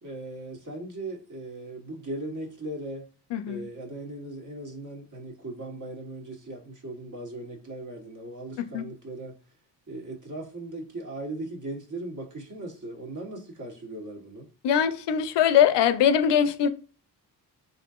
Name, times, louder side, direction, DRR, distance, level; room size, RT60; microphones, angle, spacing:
voice 1, 0.0-3.1 3.5-9.3 9.9-14.5, right 2 dB, 40° right, 1.3 m, -38 dB
voice 2, 3.3-3.7 8.7-8.8 14.6-16.7, left 9 dB, 70° left, 0.6 m, -22 dB
3.6 x 2.7 x 2.4 m
cardioid pair, 75°, 44 cm